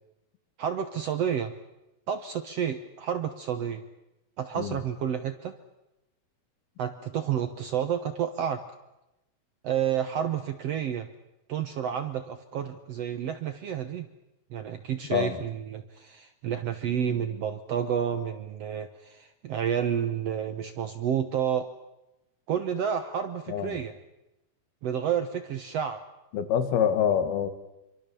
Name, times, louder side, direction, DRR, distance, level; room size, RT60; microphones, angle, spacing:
voice 1, 0.6-1.5 2.1-3.8 4.4-5.5 6.8-8.6 9.6-11.1 11.5-14.1 14.5-21.7 22.5-23.9 24.8-26.0, right 8 dB, 75° right, 9 dB, 1.4 m, -30 dB
voice 2, 23.5-23.8 26.3-27.5, left 8 dB, 80° left, 10 dB, 3.6 m, -26 dB
26.5 x 24.5 x 6.9 m, 0.96 s
omnidirectional pair, 4.3 m